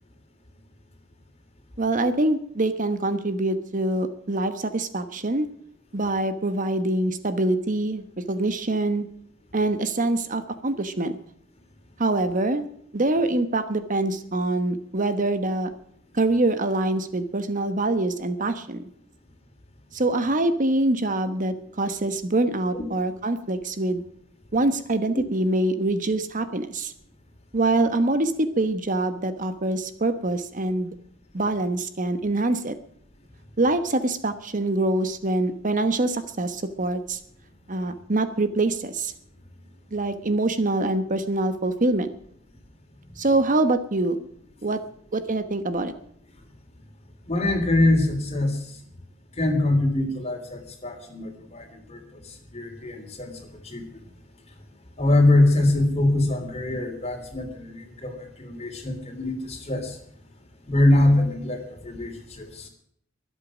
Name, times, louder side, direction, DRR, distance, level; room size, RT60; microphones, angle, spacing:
voice 1, 1.8-5.5 5.9-9.1 9.5-11.2 12.0-12.7 12.9-15.7 16.1-18.8 19.9-24.0 24.5-26.9 27.5-30.9 31.3-32.7 33.6-37.2 37.7-39.1 39.9-42.1 43.2-44.2 44.6-44.8 45.1-45.9, right 2 dB, 45° right, 10 dB, 1.1 m, -24 dB
voice 2, 47.3-48.6 49.4-52.0 52.5-53.8 55.0-60.0 60.7-62.7, left 2 dB, 35° left, 5 dB, 3.2 m, -23 dB
23.5 x 8.3 x 6.3 m, 0.66 s
head